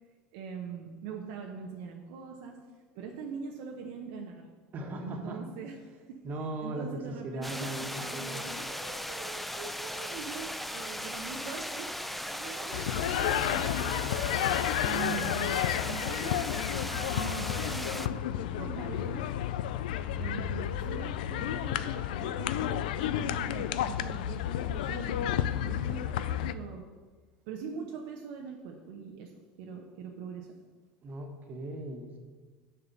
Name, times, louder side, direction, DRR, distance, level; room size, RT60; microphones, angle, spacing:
voice 1, 0.3-2.6 3.0-4.5 5.0-6.2 6.6-14.5 14.8-15.6 15.8-19.3 20.2-26.8 27.5-30.6, right 6 dB, 70° right, 1 dB, 0.9 m, -42 dB
voice 2, 4.7-5.4 6.2-8.4 14.5-14.8 31.0-32.2, right 1 dB, 40° right, 3 dB, 1.5 m, -38 dB
sound 1, 7.4-18.1, equal, ahead, 0.4 m, -38 dB
sound 2, 12.7-26.5, left 11 dB, 80° left, 0.3 m, -31 dB
sound 3, 20.1-21.9, left 3 dB, 30° left, 1.6 m, -44 dB
6.7 x 4.8 x 6.3 m, 1.4 s
hypercardioid pair, 90°, 5 cm